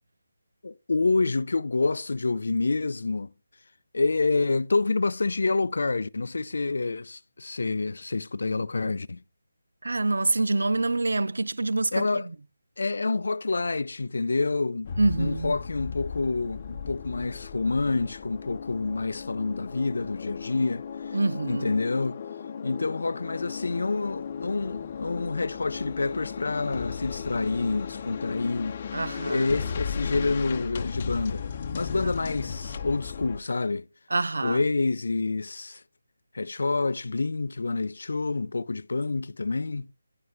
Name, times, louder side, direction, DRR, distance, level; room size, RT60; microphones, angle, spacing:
voice 1, 0.6-3.3 3.9-9.2 11.9-12.3 12.8-14.9 15.2-21.2 21.5-22.2 22.6-28.8 29.2-31.5 31.7-33.9 34.4-35.8 36.3-39.9, left 3 dB, 70° left, 0.5 m, -28 dB
voice 2, 9.8-12.2 15.0-15.5 21.1-21.7 28.9-29.5 34.1-34.6, right 2 dB, 80° right, 0.4 m, -26 dB
sound 1, 14.8-33.4, left 6 dB, 35° left, 0.8 m, -36 dB
11.0 x 5.6 x 6.2 m
figure-of-eight pair, 160°, 0 cm